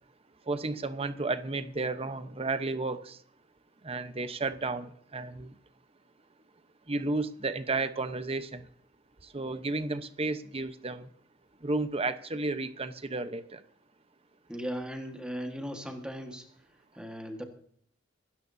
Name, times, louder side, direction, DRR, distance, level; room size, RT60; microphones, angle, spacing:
voice 1, 0.5-3.2 3.8-5.5 6.9-8.7 9.3-11.1 11.6-13.6, right 3 dB, 30° right, 11 dB, 0.9 m, -32 dB
voice 2, 14.5-16.5 16.9-17.4, equal, 5° right, 4 dB, 1.5 m, -37 dB
26.0 x 13.0 x 2.7 m, 0.63 s
head